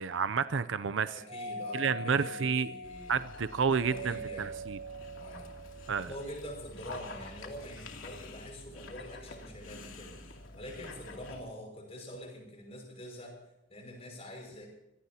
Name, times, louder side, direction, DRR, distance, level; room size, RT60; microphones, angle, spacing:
voice 1, 0.0-1.1 1.7-2.7 3.1-4.8 5.9-6.1, right 6 dB, 65° right, 0.5 m, -30 dB
voice 2, 1.1-3.1 3.8-4.5 5.2-5.5 6.0-13.4 13.7-14.7, equal, 30° left, 6.0 m, -45 dB
Doorbell, 1.3-6.1, right 1 dB, 40° right, 2.6 m, -42 dB
Dog, 2.8-11.4, left 2 dB, 80° left, 2.8 m, -48 dB
26.5 x 17.5 x 2.9 m
head